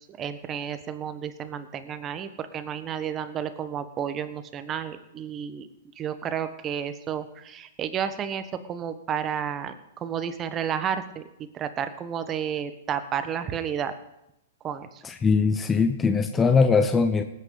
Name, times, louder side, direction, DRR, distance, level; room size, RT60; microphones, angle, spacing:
voice 1, 0.0-5.7 6.0-8.4 8.7-11.2 11.5-13.9 14.6-15.0, right 8 dB, 25° right, 10 dB, 1.2 m, -31 dB
voice 2, 15.0-17.2, left 5 dB, 15° left, 8 dB, 0.8 m, -21 dB
19.0 x 9.3 x 4.0 m, 0.88 s
hypercardioid pair, 125°, 0 cm